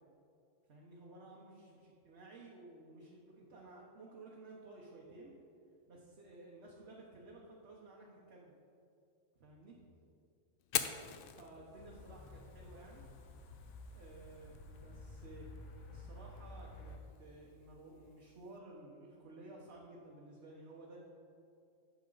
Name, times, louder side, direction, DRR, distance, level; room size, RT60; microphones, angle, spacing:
voice 1, 0.7-5.3 5.9-8.5 9.4-9.7 11.4-13.1 13.9-15.5 15.9-21.0, right 2 dB, 60° right, -3 dB, 1.3 m, -55 dB
Fire, 10.6-18.6, left 9 dB, 60° left, 0.6 m, -46 dB
sound 1, 11.8-17.0, left 2 dB, 75° left, 1.2 m, -52 dB
9.5 x 7.0 x 3.9 m, 2.5 s
omnidirectional pair, 1.3 m